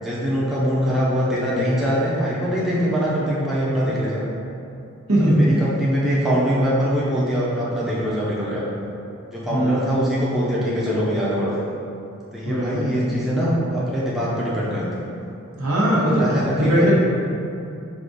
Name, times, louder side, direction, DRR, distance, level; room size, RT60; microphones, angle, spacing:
voice 1, 0.0-4.2 5.2-8.6 9.3-11.6 12.3-15.1 16.1-16.9, equal, ahead, -8 dB, 0.5 m, -23 dB
voice 2, 5.1-5.5 9.5-10.0 12.4-12.9 15.6-16.9, right 1 dB, 80° right, -6 dB, 1.0 m, -19 dB
4.9 x 2.5 x 3.8 m, 2.7 s
head